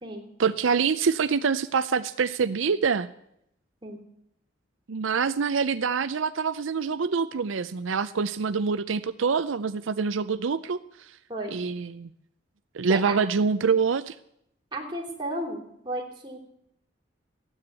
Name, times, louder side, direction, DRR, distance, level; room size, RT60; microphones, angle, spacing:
voice 1, 0.4-3.1 4.9-11.1 11.5-12.1 12.7-14.1, right 5 dB, 85° right, 12 dB, 0.5 m, -25 dB
voice 2, 14.7-16.4, right 1 dB, 25° right, 0 dB, 3.2 m, -33 dB
15.0 x 9.8 x 8.2 m, 0.76 s
head